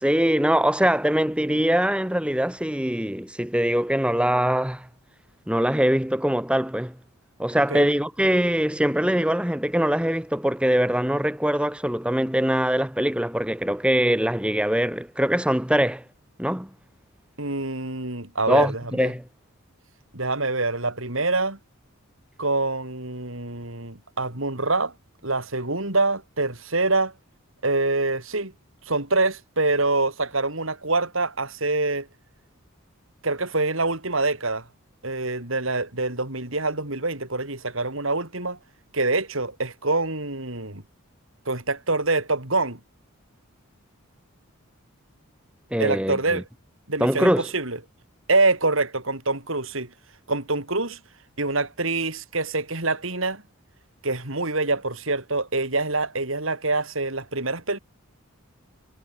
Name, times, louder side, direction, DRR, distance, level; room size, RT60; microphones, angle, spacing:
voice 1, 0.0-4.9 5.5-7.0 7.4-16.0 16.4-16.7 18.5-19.2 45.7-46.4 47.0-47.5, equal, 5° right, 1.5 m, -22 dB
voice 2, 17.4-19.1 20.1-21.6 22.4-24.9 25.2-27.1 27.6-28.5 28.9-32.1 33.2-34.7 35.0-38.6 38.9-40.8 41.4-42.8 45.8-46.4 46.9-47.8 48.3-49.9 50.3-51.0 51.4-53.4 54.0-57.8, right 3 dB, 65° right, 4.9 m, -25 dB
head